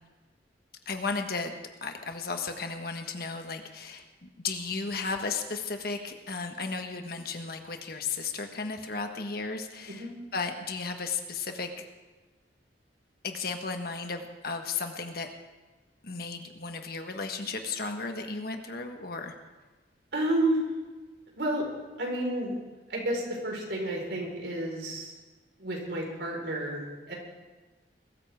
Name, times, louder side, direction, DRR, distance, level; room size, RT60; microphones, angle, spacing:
voice 1, 0.8-1.5 1.8-11.9 13.2-15.3 16.0-19.3, left 4 dB, 60° left, 5 dB, 1.5 m, -34 dB
voice 2, 20.1-20.6 21.3-21.6 22.0-22.6 22.9-25.1 25.6-27.2, right 1 dB, 90° right, -1 dB, 4.7 m, -30 dB
21.5 x 14.0 x 3.7 m, 1.2 s
head